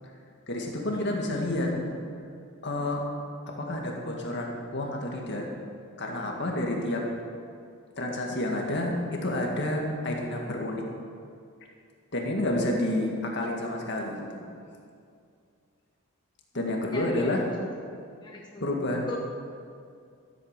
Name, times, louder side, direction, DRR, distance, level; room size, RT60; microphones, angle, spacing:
voice 1, 0.5-1.7 2.6-3.0 3.5-5.5 6.0-7.1 8.0-10.8 12.1-14.4 16.5-17.4 18.6-19.2, left 1 dB, 55° left, 0 dB, 2.1 m, -29 dB
voice 2, 16.9-17.3 18.2-18.6 19.1-19.2, left 2 dB, 20° left, -1 dB, 0.8 m, -36 dB
14.0 x 8.4 x 6.8 m, 2.4 s
head